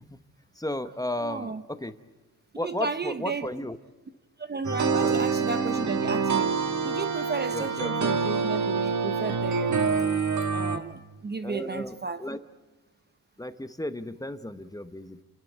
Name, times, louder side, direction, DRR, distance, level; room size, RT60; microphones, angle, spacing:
voice 1, 0.6-1.9 2.5-3.8 5.0-5.2 7.5-7.9 11.4-12.4 13.4-15.2, left 1 dB, 10° left, 0.9 m, -34 dB
voice 2, 1.2-1.6 2.6-3.5 4.4-6.5 6.8-9.8 10.5-12.3, right 4 dB, 30° right, 0.8 m, -33 dB
sound 1, 4.6-10.8, right 5 dB, 50° right, 1.7 m, -26 dB
29.5 x 11.5 x 8.0 m
cardioid pair, 95°, 36 cm